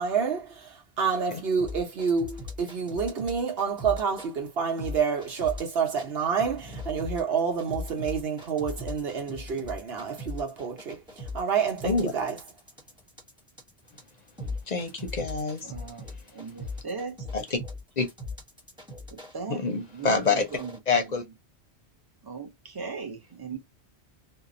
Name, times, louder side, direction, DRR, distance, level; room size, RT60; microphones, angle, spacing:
voice 1, 0.0-11.0 11.3-12.4, right 6 dB, 65° right, 1.1 m, -28 dB
sound 1, 1.6-4.3 4.8-6.1 6.4-19.4 19.9-20.8, left 2 dB, 5° right, 0.8 m, -39 dB
voice 2, 14.7-15.7 17.3-17.6 18.0-18.1 19.5-20.5 20.9-21.2, left 4 dB, 50° left, 0.6 m, -26 dB
voice 3, 15.7-16.0 16.3-17.1 19.3-19.6 20.0-20.2 20.6-20.7 22.3-23.6, right 5 dB, 30° right, 0.5 m, -37 dB
2.8 x 2.0 x 2.5 m
omnidirectional pair, 1.1 m